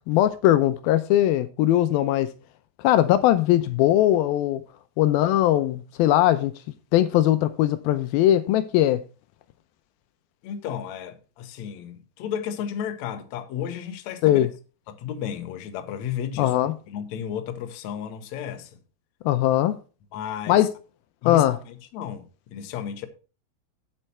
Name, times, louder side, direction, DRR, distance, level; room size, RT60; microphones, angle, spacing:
voice 1, 0.1-2.3 2.8-4.6 5.0-6.5 6.9-9.0 14.2-14.5 16.4-16.7 19.3-19.8 20.5-20.7 21.2-21.6, left 13 dB, 80° left, 2.4 m, -20 dB
voice 2, 10.4-14.5 14.9-16.5 16.9-18.7 20.1-20.7 21.2-21.6 21.9-23.1, left 8 dB, 65° left, 2.0 m, -33 dB
8.9 x 7.9 x 4.3 m
omnidirectional pair, 4.4 m